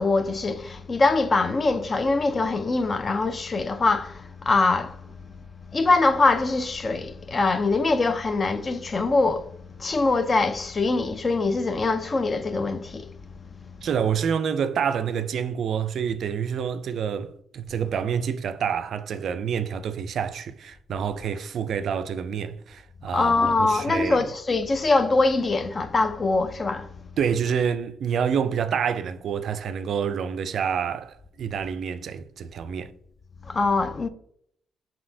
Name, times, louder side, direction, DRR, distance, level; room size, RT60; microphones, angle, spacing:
voice 1, 0.0-5.0 5.7-9.5 9.8-13.1 23.1-26.9 33.5-34.1, left 3 dB, 35° left, 0.3 m, -23 dB
voice 2, 13.8-24.3 27.2-32.9, right 7 dB, 65° right, 0.3 m, -28 dB
5.2 x 2.8 x 2.6 m
cardioid pair, 90°, 0 cm